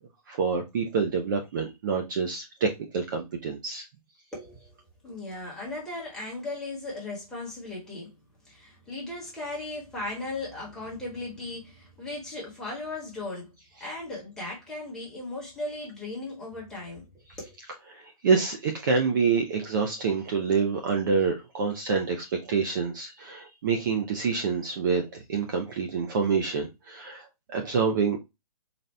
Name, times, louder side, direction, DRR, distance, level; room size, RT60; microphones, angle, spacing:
voice 1, 0.3-3.9 17.9-28.2, right 5 dB, 30° right, 0.6 m, -27 dB
voice 2, 4.3-4.7 5.0-8.1 8.4-13.5 13.8-17.1 17.4-17.5, left 2 dB, 5° left, 1.3 m, -37 dB
4.2 x 2.4 x 3.2 m
hypercardioid pair, 155°, 20 cm